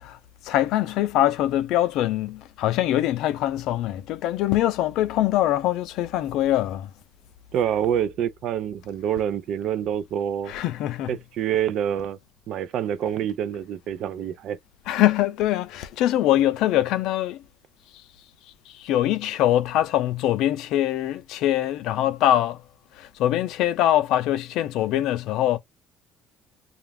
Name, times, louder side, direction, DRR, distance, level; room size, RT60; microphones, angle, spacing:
voice 1, 0.4-6.9 10.5-11.1 14.9-17.4 18.7-22.6 23.0-25.6, left 13 dB, 75° left, 0.5 m, -23 dB
voice 2, 7.5-10.5 11.1-12.2 12.5-14.6, right 9 dB, 65° right, 0.4 m, -26 dB
2.4 x 2.1 x 3.3 m
cardioid pair, 105°, 0 cm